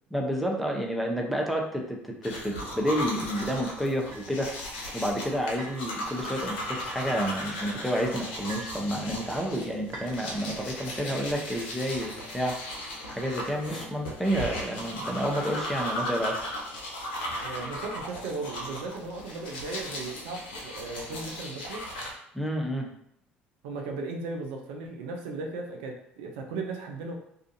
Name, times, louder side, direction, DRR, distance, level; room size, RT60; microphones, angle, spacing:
voice 1, 0.1-4.5 4.9-12.6 13.1-16.4 22.3-22.9, equal, ahead, 0 dB, 0.6 m, -30 dB
sound 1, 2.2-22.1, left 1 dB, 85° left, 0.6 m, -36 dB
sound 2, 4.1-4.3 5.6-5.8 7.1-7.3 8.5-8.8 9.9-10.1, right 2 dB, 55° right, 1.1 m, -41 dB
voice 2, 17.4-21.8 23.6-27.1, right 3 dB, 75° right, 1 dB, 0.4 m, -36 dB
2.4 x 2.4 x 2.6 m, 0.73 s
hypercardioid pair, 65°, 5 cm